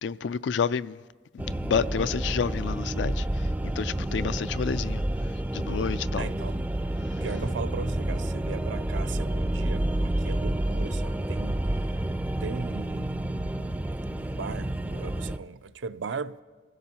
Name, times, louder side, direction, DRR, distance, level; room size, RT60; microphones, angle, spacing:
voice 1, 0.0-1.0 1.3-3.2 3.8-5.0 5.5-6.2, left 6 dB, 75° left, 0.4 m, -29 dB
sound 1, 1.4-15.4, right 1 dB, 10° right, 0.4 m, -29 dB
voice 2, 6.2-6.6 7.2-11.6 12.4-13.3 14.2-16.4, right 5 dB, 85° right, 0.5 m, -37 dB
28.5 x 16.5 x 2.9 m
head